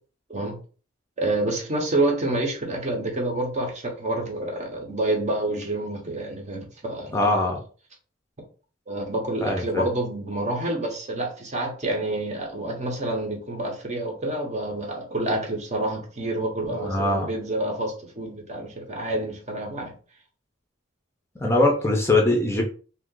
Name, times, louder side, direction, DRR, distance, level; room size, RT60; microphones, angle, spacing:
voice 1, 1.2-7.4 8.9-19.9, right 2 dB, 35° right, 2 dB, 0.8 m, -28 dB
voice 2, 7.1-7.6 9.4-9.8 16.7-17.3 21.4-22.6, left 2 dB, 15° left, 1 dB, 0.5 m, -22 dB
2.7 x 2.4 x 3.7 m, 0.38 s
head